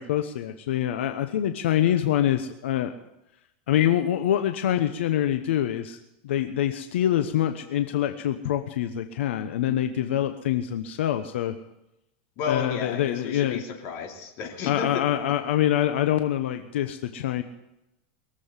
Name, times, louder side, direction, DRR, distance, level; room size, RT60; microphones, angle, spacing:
voice 1, 0.0-2.9 3.7-6.0 6.2-11.5 12.5-13.6 14.7-17.4, left 11 dB, 85° left, 8 dB, 1.0 m, -25 dB
voice 2, 12.4-15.1, left 7 dB, 45° left, 2 dB, 3.0 m, -32 dB
22.0 x 7.8 x 8.3 m, 0.90 s
supercardioid pair, 155°, 6 cm